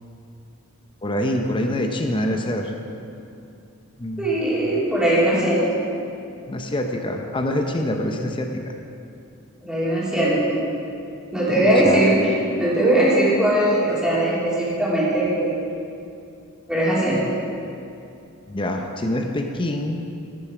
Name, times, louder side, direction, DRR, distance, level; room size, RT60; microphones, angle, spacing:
voice 1, 1.0-2.7 4.0-4.3 6.5-8.7 11.5-12.0 18.5-20.0, left 1 dB, 25° left, 4 dB, 0.6 m, -25 dB
voice 2, 4.2-5.7 9.6-10.5 11.3-12.3 12.6-15.5 16.7-17.3, right 1 dB, 5° right, -8 dB, 2.8 m, -20 dB
11.0 x 9.1 x 4.9 m, 2.6 s
head